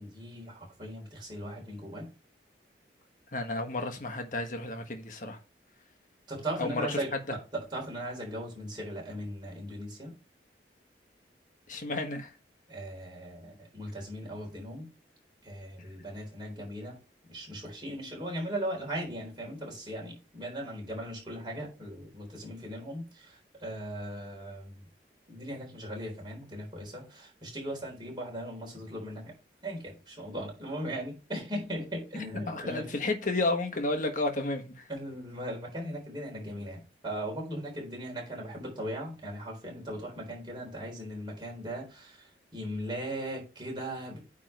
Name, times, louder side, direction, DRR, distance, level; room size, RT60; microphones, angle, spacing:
voice 1, 0.0-2.1 6.3-10.1 12.7-14.9 15.4-16.9 17.3-24.8 25.3-29.3 29.6-32.9 34.9-42.2 42.5-44.2, right 1 dB, 25° right, 3.8 m, -38 dB
voice 2, 3.3-5.4 6.6-7.4 11.7-12.4 32.5-34.9, left 2 dB, 45° left, 1.3 m, -32 dB
9.1 x 3.7 x 4.6 m
head